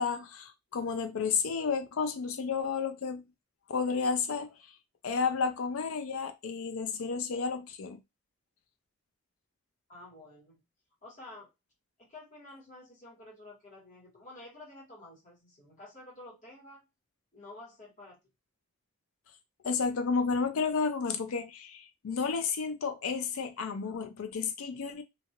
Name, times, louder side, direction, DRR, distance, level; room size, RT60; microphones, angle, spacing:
voice 1, 0.0-3.2 3.7-4.5 5.0-8.0 19.6-25.0, left 5 dB, 70° left, 0.4 m, -31 dB
voice 2, 9.9-10.6 11.0-11.5 12.0-16.8 17.3-18.2, left 2 dB, 35° left, 1.7 m, -50 dB
2.8 x 2.5 x 2.8 m
head